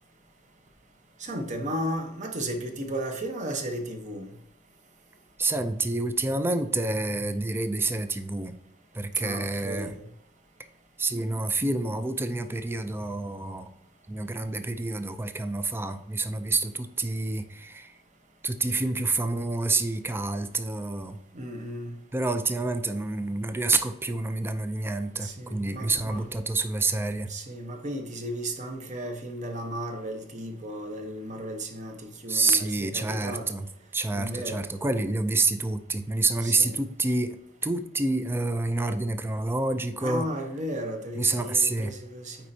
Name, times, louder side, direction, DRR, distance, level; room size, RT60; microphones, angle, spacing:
voice 1, 1.2-4.3 9.2-10.0 21.3-21.9 25.2-26.3 27.3-33.5 34.1-34.6 36.4-36.9 40.0-42.4, right 1 dB, 40° right, 4 dB, 1.0 m, -34 dB
voice 2, 5.4-8.6 8.9-9.9 11.0-13.7 14.1-17.9 18.4-21.2 22.1-27.3 32.3-40.3 41.1-41.9, right 3 dB, 10° right, 9 dB, 0.4 m, -28 dB
9.3 x 4.3 x 2.7 m, 0.78 s
head